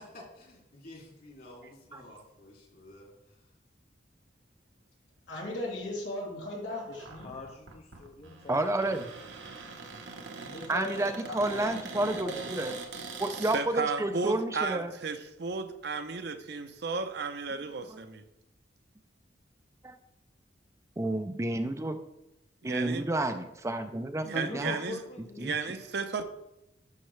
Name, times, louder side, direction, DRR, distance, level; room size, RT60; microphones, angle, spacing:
voice 1, 0.0-3.4, left 1 dB, 55° left, -2 dB, 2.7 m, -51 dB
voice 2, 5.3-7.3 10.4-11.7 12.2-12.3, left 1 dB, 85° left, -4 dB, 3.0 m, -38 dB
Cupboard open or close, 6.9-13.6, right 4 dB, 80° right, 1.1 m, -43 dB
voice 3, 7.2-9.1 24.3-25.6, left 2 dB, 35° left, 2 dB, 0.6 m, -43 dB
voice 4, 8.5-9.1 10.7-12.7 13.2-14.9 19.8-19.9 21.0-22.0 22.6-24.8 25.4-25.5, right 2 dB, 15° right, 8 dB, 0.4 m, -30 dB
voice 5, 13.5-18.2 22.6-23.1 24.2-25.0 25.4-26.2, right 4 dB, 65° right, 8 dB, 0.7 m, -34 dB
12.0 x 5.8 x 3.3 m, 0.88 s
head